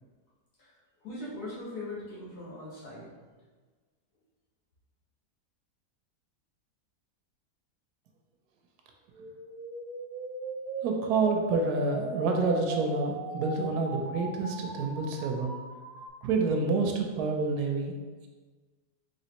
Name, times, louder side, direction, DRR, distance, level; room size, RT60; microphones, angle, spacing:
voice 1, 1.0-3.1, left 2 dB, 80° left, -9 dB, 1.8 m, -40 dB
sound 1, 9.1-16.1, right 3 dB, 65° right, 1.0 m, -38 dB
voice 2, 10.8-15.5 16.2-17.9, right 3 dB, 85° right, 2 dB, 1.1 m, -28 dB
4.2 x 3.2 x 2.9 m, 1.4 s
omnidirectional pair, 1.6 m